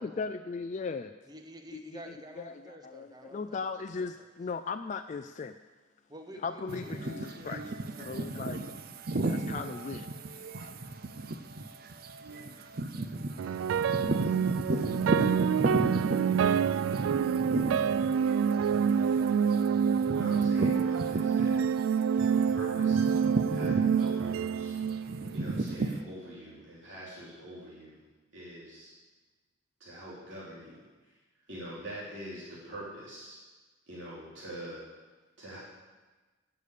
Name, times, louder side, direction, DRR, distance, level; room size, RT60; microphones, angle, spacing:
voice 1, 0.0-1.1 1.7-2.0 2.4-5.6 6.4-7.6 8.0-8.6 9.3-10.7, left 4 dB, 40° left, 8 dB, 0.3 m, -38 dB
voice 2, 1.3-3.7 3.9-4.3 6.1-8.4 25.0-25.3, right 1 dB, 20° right, 6 dB, 0.9 m, -50 dB
sound 1, 6.7-21.8 22.2-26.0, right 2 dB, 50° right, 0.6 m, -34 dB
sound 2, 13.4-25.7, right 7 dB, 85° right, 0.3 m, -27 dB
voice 3, 18.7-19.4 19.7-21.6 22.2-24.8 25.3-28.0 28.3-28.9 29.8-30.8 31.5-33.4 33.9-34.8 35.4-35.6, right 1 dB, 70° right, -9 dB, 3.4 m, -44 dB
11.5 x 6.8 x 8.4 m, 1.3 s
head